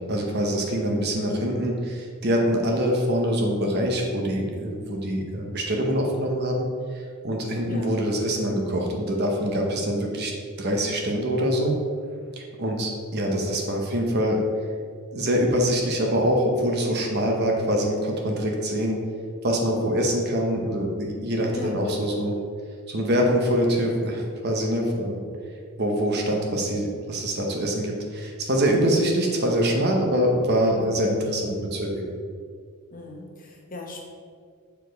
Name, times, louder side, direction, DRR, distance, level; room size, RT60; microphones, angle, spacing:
voice 1, 0.1-6.7 6.9-10.3 10.6-11.8 12.4-14.4 15.1-19.0 19.4-22.4 22.9-25.2 25.8-32.1, equal, 50° right, 1 dB, 0.9 m, -24 dB
voice 2, 32.9-34.0, left 2 dB, 40° left, -1 dB, 1.1 m, -37 dB
7.0 x 4.6 x 3.9 m, 2.1 s
head